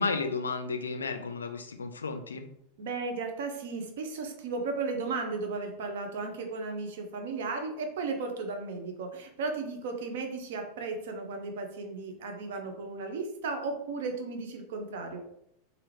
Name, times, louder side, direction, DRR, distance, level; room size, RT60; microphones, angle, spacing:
voice 1, 0.0-2.5, left 4 dB, 75° left, 7 dB, 0.3 m, -32 dB
voice 2, 2.8-15.2, right 4 dB, 60° right, 4 dB, 0.6 m, -35 dB
3.4 x 2.4 x 3.2 m, 0.76 s
figure-of-eight pair, 85°, 0 cm